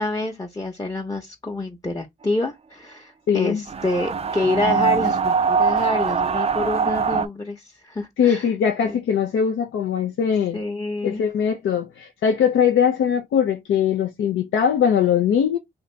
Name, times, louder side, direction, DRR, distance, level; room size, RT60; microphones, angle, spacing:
voice 1, 0.0-8.5 8.8-9.0 10.5-11.3, left 2 dB, 20° left, 0.8 m, -27 dB
voice 2, 3.3-3.6 8.2-10.6 11.0-15.6, left 8 dB, 85° left, 0.5 m, -21 dB
sound 1, 3.7-7.3, right 5 dB, 30° right, 0.3 m, -22 dB
2.7 x 2.6 x 3.2 m
cardioid pair, 50°, 20 cm